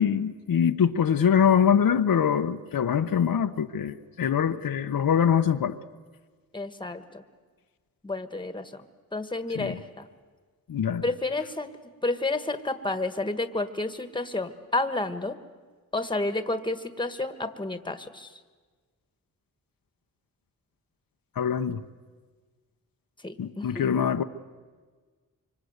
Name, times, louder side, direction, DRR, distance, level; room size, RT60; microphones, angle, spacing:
voice 1, 0.0-5.8 9.6-9.7 10.7-11.0 21.4-21.8 23.4-24.2, left 8 dB, 75° left, 7 dB, 0.9 m, -23 dB
voice 2, 6.5-7.2 8.0-8.8 9.1-10.1 11.0-11.7 12.0-15.4 15.9-18.3 23.2-24.0, left 2 dB, 15° left, 10 dB, 1.5 m, -30 dB
25.5 x 25.0 x 8.1 m, 1.4 s
wide cardioid pair, 95°, 36 cm